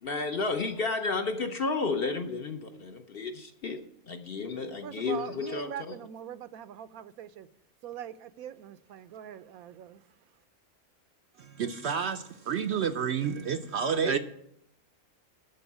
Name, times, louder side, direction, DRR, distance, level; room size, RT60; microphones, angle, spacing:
voice 1, 0.0-6.0, left 4 dB, 50° left, 0.8 m, -32 dB
voice 2, 4.8-7.5 7.8-10.0, right 10 dB, 80° right, 1.1 m, -42 dB
voice 3, 11.4-14.2, right 7 dB, 65° right, 0.7 m, -29 dB
13.0 x 4.5 x 8.4 m
omnidirectional pair, 1.5 m